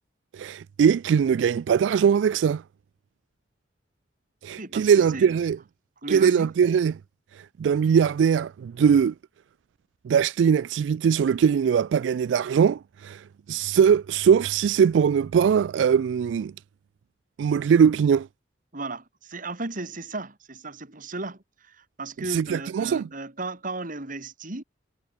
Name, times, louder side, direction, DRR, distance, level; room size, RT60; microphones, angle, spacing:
voice 1, 0.3-2.6 4.4-5.6 6.1-6.9 7.3-9.1 10.0-16.5 17.4-18.3 22.3-23.1, right 7 dB, 80° right, 0.3 m, -21 dB
voice 2, 4.6-5.4 6.0-6.5 18.7-24.6, right 2 dB, 45° right, 2.6 m, -35 dB
head